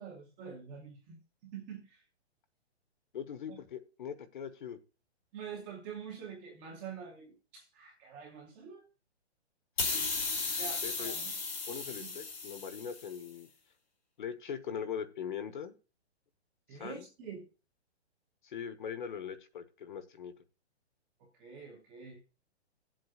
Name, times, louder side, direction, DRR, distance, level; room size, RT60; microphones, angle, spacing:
voice 1, 0.0-2.0 3.5-3.6 5.3-8.8 10.6-11.3 12.0-12.1 16.7-17.4 21.3-22.2, right 6 dB, 10° right, 0.7 m, -46 dB
voice 2, 3.1-4.8 10.8-11.1 11.7-13.5 14.2-15.7 16.7-17.1 18.4-20.3, left 7 dB, 45° left, 1.1 m, -41 dB
sound 1, 9.8-13.2, left 4 dB, 65° left, 2.9 m, -35 dB
18.5 x 7.6 x 2.4 m
hypercardioid pair, 175°, 34 cm